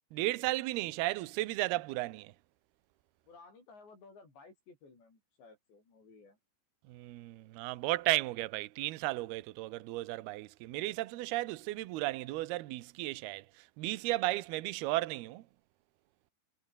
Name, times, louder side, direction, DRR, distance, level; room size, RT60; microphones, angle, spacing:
voice 1, 0.1-2.3 6.9-15.4, right 19 dB, 75° right, 2.4 m, -34 dB
voice 2, 3.3-6.4, left 4 dB, 60° left, 10.0 m, -57 dB
omnidirectional pair, 5.8 m